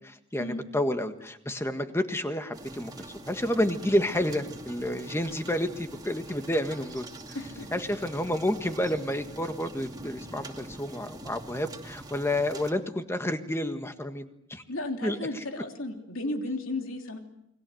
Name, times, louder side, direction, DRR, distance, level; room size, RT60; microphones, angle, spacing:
voice 1, 0.3-7.1 7.7-14.6 15.0-15.2, left 1 dB, 15° left, 7 dB, 1.7 m, -30 dB
sound 1, 2.5-12.7, right 2 dB, 20° right, 2.5 m, -44 dB
voice 2, 7.3-7.7 14.7-17.2, left 2 dB, 75° left, 4 dB, 3.2 m, -34 dB
29.5 x 21.5 x 7.9 m, 0.82 s
head